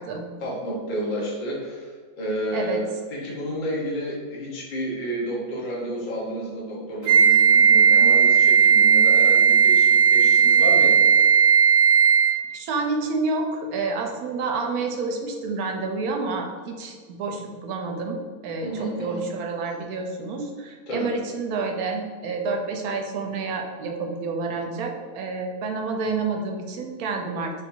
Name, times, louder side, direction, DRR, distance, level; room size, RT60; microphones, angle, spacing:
voice 1, 0.4-11.3 18.6-19.2 20.9-21.1, right 1 dB, 40° left, -4 dB, 0.8 m, -30 dB
Wind instrument woodwind instrument, 7.1-12.4, right 7 dB, 60° right, 0.6 m, -16 dB
voice 2, 12.5-27.5, right 3 dB, 80° right, 3 dB, 1.1 m, -29 dB
3.2 x 2.6 x 4.4 m, 1.5 s
omnidirectional pair, 1.6 m